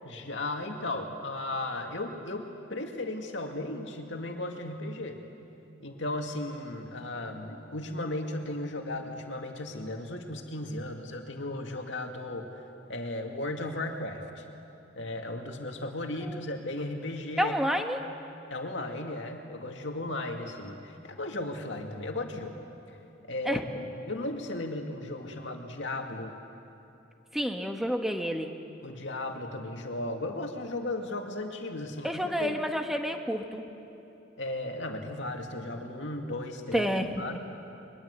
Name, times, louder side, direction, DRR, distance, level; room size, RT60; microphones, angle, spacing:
voice 1, 0.0-5.2 5.8-12.5 12.9-14.4 14.9-17.5 18.5-22.5 23.3-26.3 28.8-32.6 34.4-36.9 37.2-37.4, left 2 dB, 70° left, 3 dB, 2.2 m, -35 dB
voice 2, 17.4-18.0 23.4-23.6 27.3-28.5 32.0-33.6 36.7-37.4, equal, ahead, 4 dB, 1.3 m, -29 dB
22.5 x 21.0 x 8.1 m, 2.9 s
head